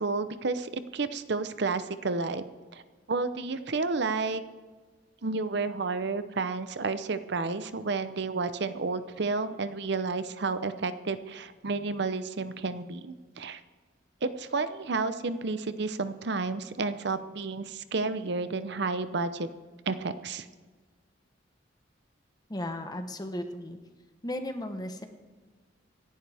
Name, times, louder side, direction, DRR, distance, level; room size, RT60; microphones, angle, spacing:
voice 1, 0.0-2.4 2.7-2.8 3.1-4.4 5.2-13.6 14.2-19.5 19.9-20.5, right 3 dB, 60° right, 12 dB, 0.7 m, -31 dB
voice 2, 22.5-23.8 24.2-25.1, left 1 dB, 20° left, 7 dB, 1.0 m, -35 dB
26.0 x 11.0 x 3.5 m, 1.4 s
head